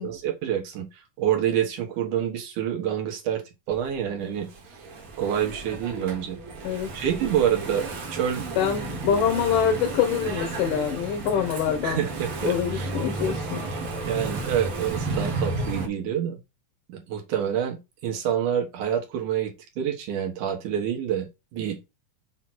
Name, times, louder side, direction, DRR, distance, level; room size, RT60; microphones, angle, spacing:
voice 1, 0.0-3.4 3.7-4.8 5.2-6.4 6.7-8.5 11.8-12.9 14.1-16.4 16.9-22.0, right 9 dB, 75° right, 3.0 m, -27 dB
Engine / Mechanisms, 3.7-15.9, right 3 dB, 50° right, 2.3 m, -33 dB
voice 2, 8.6-12.0 12.4-13.7, left 8 dB, 85° left, 2.7 m, -25 dB
7.4 x 3.1 x 6.0 m
omnidirectional pair, 3.7 m